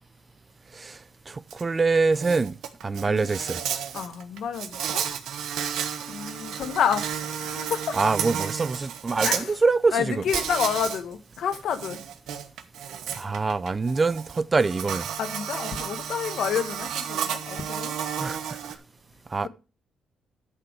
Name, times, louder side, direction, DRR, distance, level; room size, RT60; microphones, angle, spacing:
voice 1, 1.3-2.6 2.8-3.6 8.0-10.2 13.2-15.1 18.2-18.6 19.3-19.5, right 4 dB, 30° right, 0.4 m, -24 dB
Insect, 1.5-1.6 2.0-9.4 10.3-11.0 11.4-18.8, right 8 dB, 80° right, 1.0 m, -32 dB
voice 2, 3.9-5.1 6.1-8.1 9.2-9.6 9.9-12.0 15.2-17.9, left 7 dB, 70° left, 1.2 m, -29 dB
11.0 x 5.9 x 4.8 m
cardioid pair, 90°, 0 cm